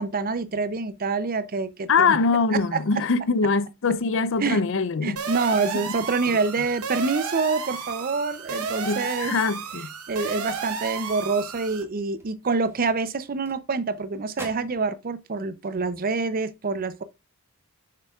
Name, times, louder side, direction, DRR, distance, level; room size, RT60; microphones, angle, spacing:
voice 1, 0.0-2.2 2.5-2.8 4.4-4.6 5.0-9.3 10.1-17.0, right 4 dB, 40° right, 0.6 m, -26 dB
voice 2, 1.9-5.2 8.9-9.9, left 4 dB, 60° left, 0.6 m, -23 dB
sound 1, 5.2-11.8, right 5 dB, 85° right, 1.0 m, -33 dB
sound 2, 7.7-10.3 10.7-11.0 11.3-11.5 12.1-14.0 14.3-14.8, right 2 dB, 10° right, 1.9 m, -47 dB
6.7 x 6.7 x 2.4 m
head